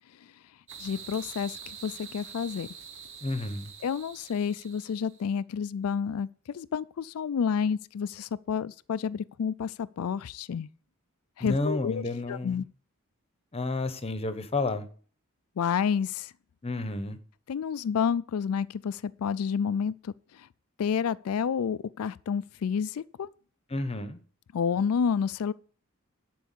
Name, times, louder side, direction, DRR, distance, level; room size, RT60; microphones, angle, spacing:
sound 1, 0.7-5.2, right 7 dB, 60° right, 1.3 m, -45 dB
voice 1, 0.8-2.7 3.8-10.7 11.4-12.0 12.3-12.6 15.6-16.3 17.5-20.5 20.8-23.3 24.5-25.5, left 7 dB, 80° left, 0.4 m, -30 dB
voice 2, 3.2-3.7 11.4-12.6 13.5-14.9 16.6-17.2 23.7-24.2, left 2 dB, 25° left, 0.9 m, -31 dB
11.5 x 4.7 x 8.3 m
head